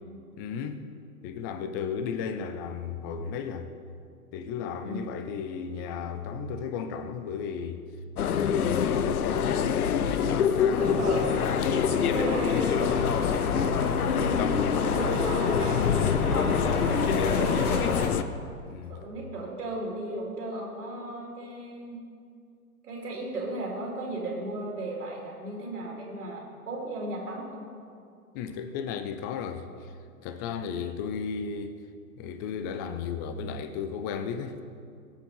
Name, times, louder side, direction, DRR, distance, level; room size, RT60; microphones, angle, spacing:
voice 1, 0.4-0.8 1.2-3.7 4.3-7.8 8.2-9.7 9.9-10.9 11.6-13.8 14.9-15.2 18.7-19.0 28.3-29.9 30.2-31.7 32.2-34.6, left 6 dB, 15° left, 0.3 m, -35 dB
sound 1, 8.2-18.2, left 7 dB, 75° left, 0.9 m, -25 dB
sound 2, 10.7-18.1, left 2 dB, 45° left, 3.2 m, -32 dB
voice 2, 10.8-11.3 12.1-12.9 14.8-18.0 18.9-22.0 22.8-27.6, right 2 dB, 90° right, 4.3 m, -35 dB
22.5 x 7.5 x 5.5 m
hypercardioid pair, 115°, 45 cm